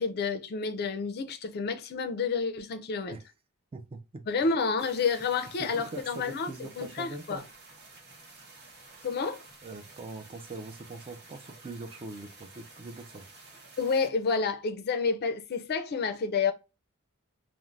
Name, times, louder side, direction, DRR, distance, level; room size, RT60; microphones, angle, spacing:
voice 1, 0.0-3.2 4.3-7.4 9.0-9.4 13.8-16.5, left 5 dB, 45° left, 0.4 m, -29 dB
voice 2, 3.7-4.2 5.6-7.4 9.6-13.2, right 3 dB, 25° right, 0.3 m, -42 dB
sound 1, 4.8-14.1, right 3 dB, 50° right, 1.0 m, -52 dB
2.4 x 2.0 x 3.1 m
head